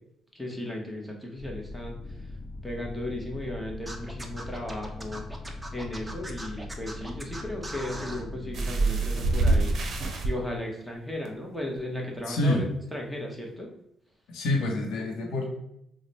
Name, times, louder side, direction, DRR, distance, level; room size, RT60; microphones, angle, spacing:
voice 1, 0.3-2.3 2.6-5.3 5.7-9.8 10.2-13.7, left 1 dB, 5° left, 0 dB, 0.9 m, -36 dB
sound 1, 1.4-10.2, left 2 dB, 35° left, 0.7 m, -40 dB
Scratching (performance technique), 3.9-8.2, right 1 dB, 15° right, 0.5 m, -40 dB
sound 2, 8.5-10.3 11.2-11.3 11.8-11.9, right 3 dB, 60° right, 0.6 m, -25 dB
voice 2, 12.3-12.7 14.3-15.5, left 1 dB, 85° left, 1 dB, 0.7 m, -27 dB
3.1 x 2.1 x 4.0 m, 0.77 s
cardioid pair, 90°, 0 cm